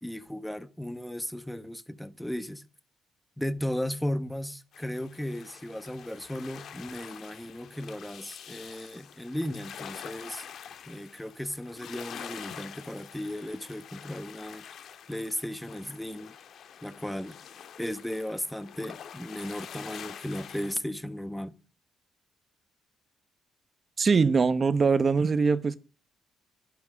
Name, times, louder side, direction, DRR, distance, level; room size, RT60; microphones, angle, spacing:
voice 1, 0.0-2.6 3.4-10.4 10.9-14.6 15.1-16.3 16.8-17.4 17.8-21.5, left 1 dB, 5° left, 1.1 m, -35 dB
sound 1, 4.7-20.7, left 8 dB, 70° left, 1.5 m, -46 dB
voice 2, 24.0-25.8, right 5 dB, 40° right, 0.8 m, -22 dB
12.0 x 11.5 x 6.2 m
cardioid pair, 90°, 0 cm